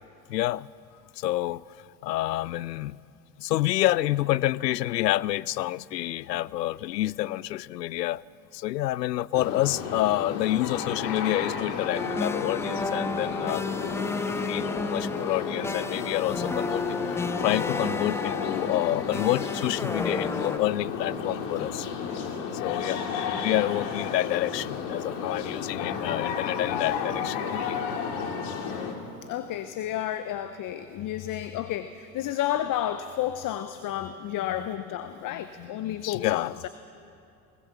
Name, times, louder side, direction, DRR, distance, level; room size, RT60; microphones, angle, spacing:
voice 1, 0.3-0.7 1.2-1.6 2.0-3.0 3.4-8.2 8.5-13.8 14.4-21.9 22.6-23.0 23.4-27.8 36.0-36.7, left 15 dB, 85° left, 23 dB, 0.5 m, -28 dB
sound 1, 9.3-28.9, left 6 dB, 60° left, 2.6 m, -32 dB
sound 2, 11.9-20.6, left 3 dB, 5° left, 0.4 m, -32 dB
voice 2, 29.3-36.7, left 11 dB, 40° left, 11 dB, 0.9 m, -31 dB
21.0 x 19.0 x 6.9 m, 2.6 s
hypercardioid pair, 75°, 48 cm